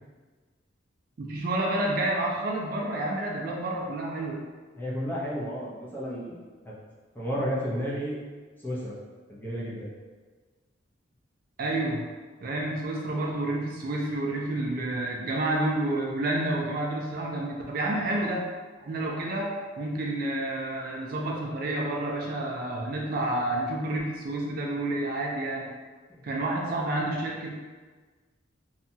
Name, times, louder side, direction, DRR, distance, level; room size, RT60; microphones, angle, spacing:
voice 1, 1.2-4.4 11.6-12.0 12.4-18.5 18.8-25.7 26.2-27.6, right 1 dB, 50° right, -1 dB, 0.3 m, -29 dB
voice 2, 4.8-6.4 6.6-6.7 7.1-8.2 8.6-8.9 9.3-9.9 26.1-26.2, equal, 10° left, -7 dB, 0.5 m, -32 dB
2.8 x 2.2 x 2.6 m, 1.4 s
head